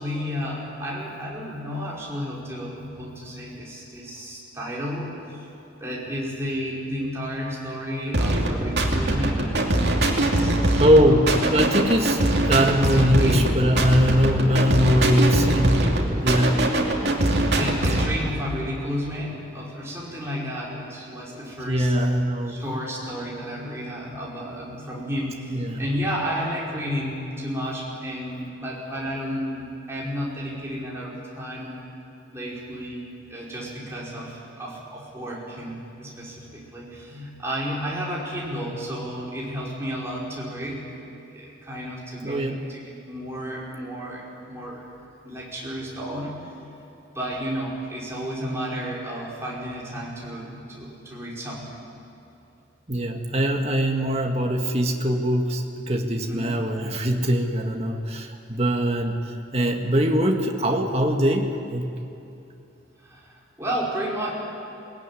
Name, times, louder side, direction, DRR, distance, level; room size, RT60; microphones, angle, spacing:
voice 1, 0.0-5.5 5.8-9.5 10.1-10.8 11.1-11.2 13.0-13.5 17.6-21.9 22.5-31.8 32.3-40.9 41.3-44.9 45.2-46.5 47.1-51.8 56.3-56.6 63.0-64.3, equal, 15° right, -5 dB, 5.4 m, -32 dB
sound 1, 8.1-18.1, right 1 dB, 60° right, 2.9 m, -22 dB
voice 2, 10.8-15.9 16.2-16.6 17.3-17.4 21.6-22.6 25.5-25.8 42.2-42.6 52.9-59.2 59.5-61.9, equal, 35° right, 3 dB, 1.9 m, -22 dB
22.0 x 19.5 x 10.0 m, 2.8 s
head